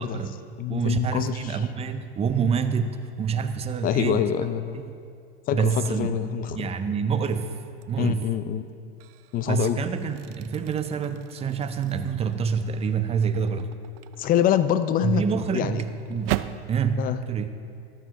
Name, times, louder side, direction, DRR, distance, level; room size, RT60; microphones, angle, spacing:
voice 1, 0.0-0.4 0.7-4.3 4.7-4.9 5.5-7.5 7.9-8.3 9.5-13.7 15.0-17.5, right 6 dB, 20° right, 9 dB, 0.6 m, -27 dB
voice 2, 0.6-1.4 3.8-4.8 5.5-6.7 8.0-8.6 9.3-9.8 14.2-15.2 15.5-15.8 17.0-17.2, left 10 dB, 25° left, 12 dB, 0.5 m, -25 dB
sound 1, 7.8-8.1 8.7-16.7, right 15 dB, 65° right, 0.5 m, -38 dB
13.5 x 12.0 x 3.6 m, 2.4 s
hypercardioid pair, 110°, 32 cm